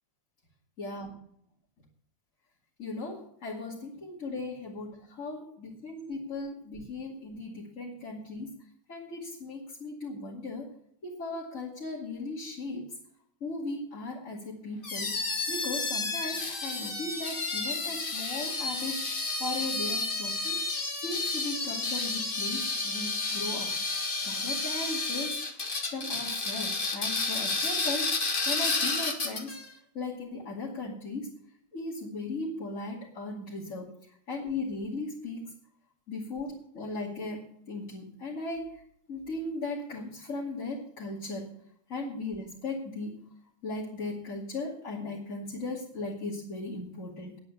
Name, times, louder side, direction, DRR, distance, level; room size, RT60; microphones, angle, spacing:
voice 1, 0.8-1.1 2.8-8.6 8.9-10.7 11.0-12.9 13.4-15.2 15.5-19.0 19.4-20.6 21.0-23.8 24.2-25.4 25.9-28.1 28.5-29.6 29.9-31.3 31.7-35.5 36.1-38.8 39.1-41.5 41.9-43.3 43.6-47.4, left 2 dB, 75° left, -7 dB, 3.0 m, -37 dB
sound 1, 14.8-29.7, left 3 dB, 40° left, 1.7 m, -31 dB
10.0 x 8.4 x 8.4 m, 0.71 s
omnidirectional pair, 1.4 m